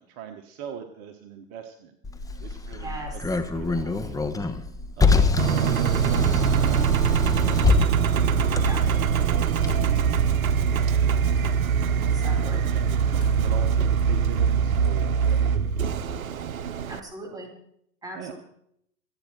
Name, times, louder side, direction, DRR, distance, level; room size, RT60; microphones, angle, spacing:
voice 1, 0.0-2.0 2.4-4.5 5.0-7.9 8.3-11.2 11.7-16.3 18.1-18.3, right 8 dB, 45° right, 5 dB, 1.5 m, -43 dB
Car, 2.0-9.7, left 4 dB, 10° left, 1.1 m, -26 dB
voice 2, 2.8-3.2 5.2-5.7 8.6-8.8 12.0-12.6 16.9-17.5 18.0-18.4, right 2 dB, 10° right, 0 dB, 4.8 m, -39 dB
Engine, 5.4-17.0, right 7 dB, 70° right, 1.0 m, -23 dB
sound 1, 9.6-10.2 11.2-12.3 13.1-15.4, left 5 dB, 30° left, 4.3 m, -49 dB
26.5 x 9.0 x 4.6 m, 0.71 s
figure-of-eight pair, 95°, 43 cm